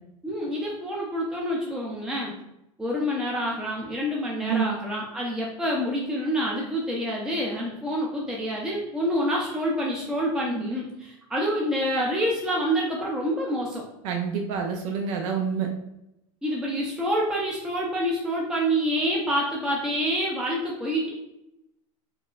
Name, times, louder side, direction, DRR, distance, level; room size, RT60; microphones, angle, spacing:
voice 1, 0.2-2.3 2.8-13.8 16.4-21.1, equal, 5° right, -3 dB, 0.5 m, -27 dB
voice 2, 4.4-4.8 14.0-15.7, right 6 dB, 70° right, 2 dB, 0.5 m, -27 dB
4.3 x 2.0 x 2.3 m, 0.87 s
hypercardioid pair, 105°, 18 cm